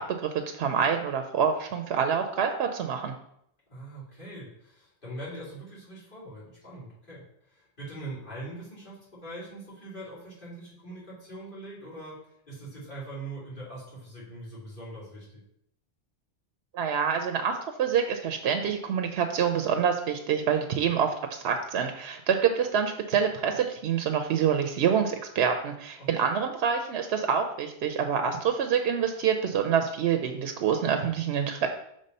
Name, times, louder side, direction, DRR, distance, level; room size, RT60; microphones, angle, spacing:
voice 1, 0.0-3.1 16.7-31.7, right 7 dB, 85° right, 5 dB, 0.8 m, -26 dB
voice 2, 3.7-15.4 26.0-26.3, right 1 dB, 55° left, -8 dB, 2.8 m, -42 dB
5.4 x 3.5 x 5.3 m, 0.74 s
omnidirectional pair, 1.0 m